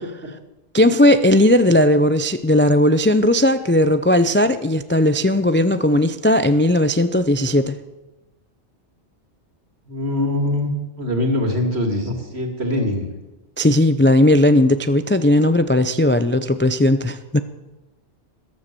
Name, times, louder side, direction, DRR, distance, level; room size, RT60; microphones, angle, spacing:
voice 1, 0.7-7.8 13.6-17.4, left 1 dB, 20° left, 11 dB, 0.3 m, -16 dB
voice 2, 9.9-10.7 11.0-13.1, left 1 dB, 65° right, 3 dB, 2.8 m, -22 dB
14.0 x 13.0 x 6.9 m, 1.0 s
omnidirectional pair, 1.2 m